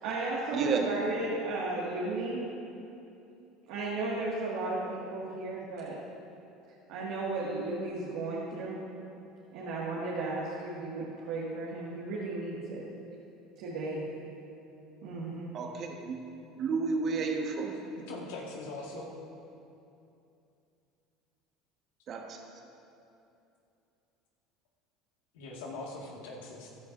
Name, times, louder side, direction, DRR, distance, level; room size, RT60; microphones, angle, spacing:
voice 1, 0.0-2.4 3.7-6.0 6.9-8.8 9.5-12.8 13.6-14.0 15.0-15.5, right 2 dB, 75° right, -6 dB, 2.0 m, -34 dB
voice 2, 0.5-0.9 15.5-16.2 16.6-17.7 22.1-22.5, right 4 dB, 45° right, 2 dB, 1.5 m, -31 dB
voice 3, 18.1-19.1 25.3-26.7, left 2 dB, 85° left, -2 dB, 1.9 m, -41 dB
15.5 x 11.5 x 2.7 m, 2.7 s
supercardioid pair, 90°, 0 cm